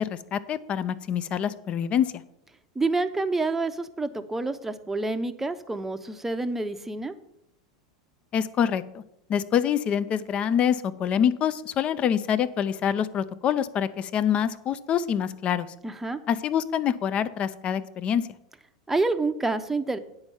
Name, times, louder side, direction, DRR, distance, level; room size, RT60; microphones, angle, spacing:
voice 1, 0.0-2.1 8.3-9.0 9.3-15.7 16.3-18.3, left 8 dB, 35° left, 14 dB, 0.6 m, -26 dB
voice 2, 2.8-7.1 15.8-16.2 18.9-20.0, right 3 dB, 10° right, 9 dB, 0.7 m, -28 dB
8.8 x 5.2 x 7.1 m, 0.80 s
hypercardioid pair, 95°, 3 cm